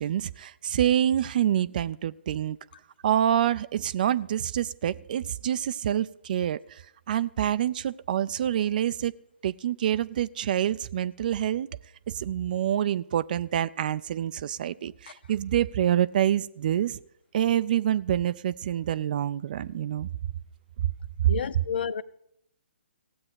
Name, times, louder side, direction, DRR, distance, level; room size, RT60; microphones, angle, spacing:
voice 1, 0.0-2.6 3.0-6.8 7.1-9.1 9.4-11.7 12.1-17.0 17.3-20.1 20.8-20.9 21.2-21.3, right 10 dB, 50° right, 0.5 m, -26 dB
voice 2, 21.3-22.0, left 7 dB, 60° left, 0.7 m, -30 dB
16.0 x 8.6 x 8.2 m
figure-of-eight pair, 135°, 6 cm